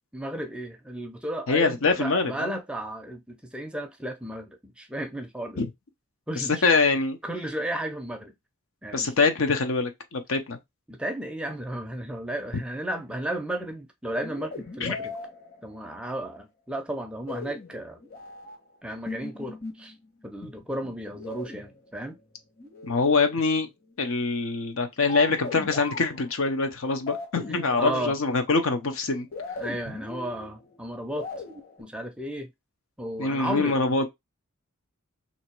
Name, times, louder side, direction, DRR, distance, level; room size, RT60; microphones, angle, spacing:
voice 1, 0.1-5.6 6.3-6.7 7.2-8.3 8.8-9.1 10.9-15.1 15.6-18.0 18.8-19.9 20.2-22.2 27.5-28.2 29.6-31.3 31.8-32.5 33.0-33.8, right 1 dB, 5° right, 0.5 m, -34 dB
voice 2, 1.5-2.5 5.6-5.7 6.4-7.2 8.9-10.6 14.8-15.0 22.8-23.7 24.0-29.3 33.2-34.1, left 4 dB, 70° left, 0.8 m, -24 dB
sound 1, 14.2-16.1 17.3-18.6 19.1-19.9 20.4-23.6 25.1-28.8 29.3-31.8, left 3 dB, 45° left, 1.4 m, -39 dB
3.0 x 2.9 x 4.4 m
head